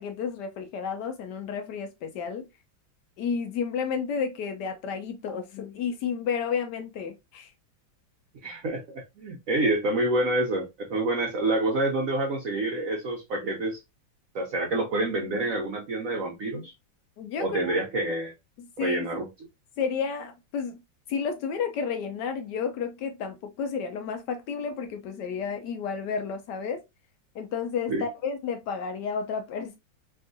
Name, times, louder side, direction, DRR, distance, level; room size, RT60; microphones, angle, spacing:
voice 1, 0.0-2.5 3.2-7.5 17.2-17.7 18.6-19.1 19.8-20.8 21.1-26.8 27.3-29.8, left 6 dB, 75° left, 1.0 m, -31 dB
voice 2, 8.4-13.8 14.3-16.7 17.4-18.3 18.8-19.3 27.9-28.0, right 2 dB, 70° right, 0.8 m, -27 dB
3.5 x 2.4 x 2.5 m
omnidirectional pair, 2.2 m